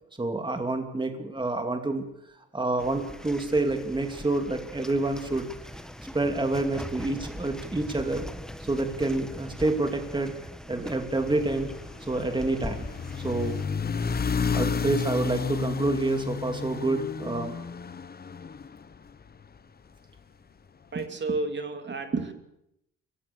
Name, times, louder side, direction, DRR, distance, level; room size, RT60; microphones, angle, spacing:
voice 1, 0.2-2.0 2.5-5.5 6.1-8.3 8.6-10.3 10.7-11.7 12.1-12.9 13.2-13.6 14.5-17.5, right 2 dB, 15° right, 5 dB, 2.5 m, -28 dB
sound 1, 2.8-13.7, equal, ahead, 1.5 m, -41 dB
sound 2, 11.1-19.5, left 5 dB, 30° left, 1.0 m, -31 dB
voice 2, 20.9-22.3, right 3 dB, 35° right, 6 dB, 2.6 m, -30 dB
23.0 x 18.0 x 6.9 m, 0.82 s
cardioid pair, 90°, 30 cm